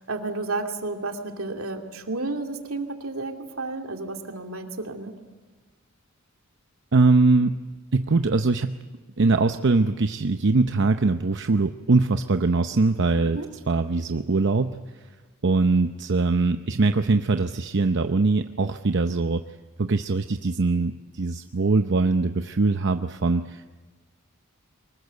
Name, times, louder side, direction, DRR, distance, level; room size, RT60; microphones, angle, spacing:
voice 1, 0.0-5.1 13.2-13.5, right 3 dB, 80° right, 4 dB, 2.5 m, -32 dB
voice 2, 6.9-7.6 7.9-8.8 9.2-13.4 13.7-15.0 15.4-19.4 19.8-23.7, right 3 dB, 60° right, 8 dB, 0.7 m, -22 dB
24.0 x 20.5 x 8.1 m, 1.3 s
head